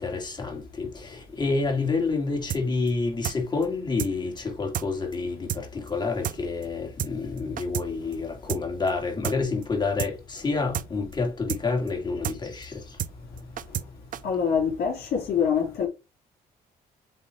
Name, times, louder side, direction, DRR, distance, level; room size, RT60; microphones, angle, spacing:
voice 1, 0.0-12.8, left 4 dB, 25° left, 2.7 m, -28 dB
sound 1, 2.5-2.6 2.9-3.0 3.2-3.4 3.6-3.7 4.0-4.1 4.4-4.5 4.7-4.9 5.1-5.2 5.5-5.6 5.9-6.0 6.2-6.4 6.6-6.7 7.0-7.1 7.4-7.9 8.1-8.2 8.5-8.6 8.9-9.0 9.2-9.4 9.6-9.7 10.0-10.1 10.4-10.5 10.7-10.9 11.1-11.2 11.5-11.6 11.9-12.0 12.2-12.4 12.6-12.7 13.0-13.1 13.4-13.9 14.1-14.2, right 10 dB, 55° right, 0.7 m, -30 dB
voice 2, 14.2-15.9, left 7 dB, 75° left, 2.8 m, -25 dB
8.1 x 3.2 x 4.6 m
cardioid pair, 115°, 16 cm